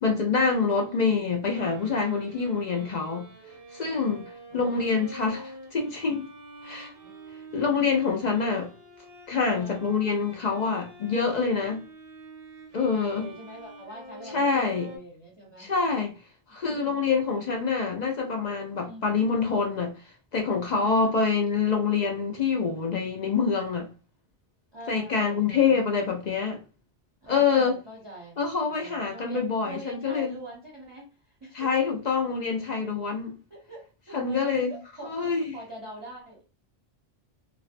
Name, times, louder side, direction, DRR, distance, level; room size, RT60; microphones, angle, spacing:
voice 1, 0.0-3.3 3.7-6.3 6.6-6.9 7.5-8.7 9.3-11.9 12.7-13.3 14.3-14.9 15.6-16.2 16.5-19.9 20.3-23.9 24.9-26.6 27.3-27.7 28.4-30.3 31.5-33.4 34.1-34.8 35.0-35.6, left 5 dB, 55° left, 0.5 m, -26 dB
Bowed string instrument, 1.5-15.0, right 1 dB, 70° right, 0.9 m, -47 dB
voice 2, 4.5-4.9 7.0-7.1 8.3-8.4 9.5-9.8 12.9-15.7 16.6-17.0 18.8-19.1 20.8-21.2 24.7-25.8 27.2-31.7 33.5-36.4, right 1 dB, 30° right, 0.6 m, -43 dB
2.5 x 2.1 x 2.5 m
omnidirectional pair, 1.0 m